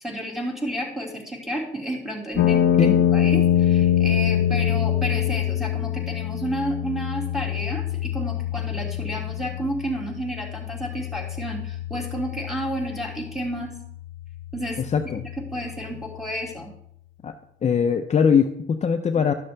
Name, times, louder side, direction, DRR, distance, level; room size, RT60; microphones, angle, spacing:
voice 1, 0.0-13.7 14.5-14.8 15.4-16.7, right 1 dB, ahead, -2 dB, 2.1 m, -31 dB
sound 1, 2.4-16.4, left 10 dB, 80° left, 0.5 m, -25 dB
voice 2, 14.8-15.2 17.2-17.3 17.6-19.3, left 6 dB, 35° left, 6 dB, 0.6 m, -21 dB
11.5 x 6.6 x 3.3 m, 0.72 s
cardioid pair, 90°, 20 cm